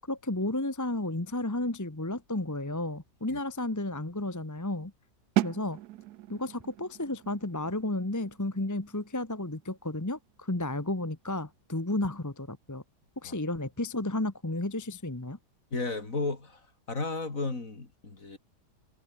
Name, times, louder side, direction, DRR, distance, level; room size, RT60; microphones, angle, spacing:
voice 1, 0.1-4.9 5.4-5.8 6.3-12.8 13.2-15.4, left 2 dB, 10° left, 1.3 m, -32 dB
sound 1, 5.4-11.1, right 15 dB, 75° right, 1.1 m, -37 dB
voice 2, 15.7-16.6 16.9-18.4, left 3 dB, 50° left, 3.9 m, -33 dB
omnidirectional pair, 1.8 m